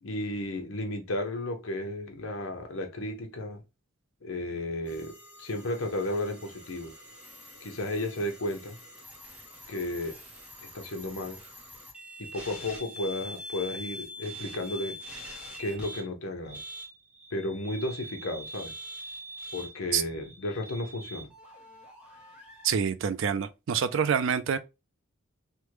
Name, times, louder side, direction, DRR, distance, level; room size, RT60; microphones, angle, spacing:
voice 1, 0.0-3.6 4.2-6.9 7.6-8.8 9.7-10.2 10.6-11.4 12.2-15.0 15.6-16.6 17.3-18.7 19.5-21.3, left 1 dB, 65° left, 0.8 m, -33 dB
sound 1, 4.8-16.1 16.4-22.7, equal, 5° right, 0.8 m, -44 dB
voice 2, 22.6-24.6, right 7 dB, 60° right, 0.3 m, -26 dB
3.4 x 2.1 x 3.0 m
head